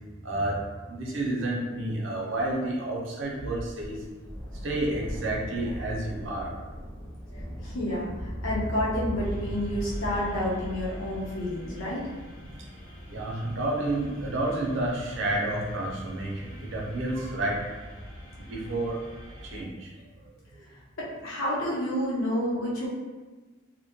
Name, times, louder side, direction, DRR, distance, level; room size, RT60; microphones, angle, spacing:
voice 1, 0.2-4.0 4.6-6.5 7.2-7.4 13.1-17.6 18.4-19.0 19.4-19.9, right 1 dB, 70° right, -2 dB, 0.5 m, -30 dB
Thunder, 3.2-16.1 17.0-17.1, equal, 5° left, 0.4 m, -39 dB
voice 2, 7.6-12.1 21.0-22.9, left 1 dB, 80° left, -7 dB, 0.7 m, -29 dB
sound 1, 9.2-19.6, equal, 45° left, 0.7 m, -43 dB
2.1 x 2.1 x 2.8 m, 1.2 s
head